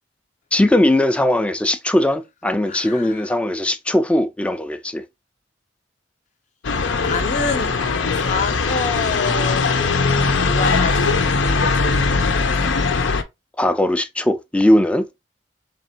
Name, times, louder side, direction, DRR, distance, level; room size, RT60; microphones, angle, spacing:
voice 1, 0.5-5.0 13.6-15.1, left 1 dB, 5° left, 0.3 m, -19 dB
voice 2, 2.7-3.3 7.0-7.8 8.1-12.8, left 4 dB, 40° left, 0.6 m, -28 dB
sound 1, 6.6-13.2, left 4 dB, 90° left, 0.6 m, -20 dB
4.1 x 3.3 x 2.8 m
head